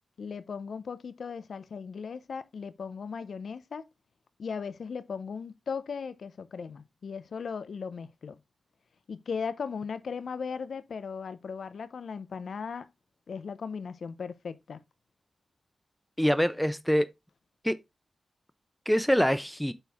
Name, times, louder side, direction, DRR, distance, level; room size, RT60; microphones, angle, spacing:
voice 1, 0.2-3.9 4.4-8.4 9.1-12.9 13.3-14.8, left 5 dB, 80° left, 0.7 m, -37 dB
voice 2, 16.2-17.1 17.6-17.8 18.9-19.7, equal, 5° left, 0.8 m, -25 dB
7.9 x 4.6 x 3.5 m
wide cardioid pair, 75°, 0 cm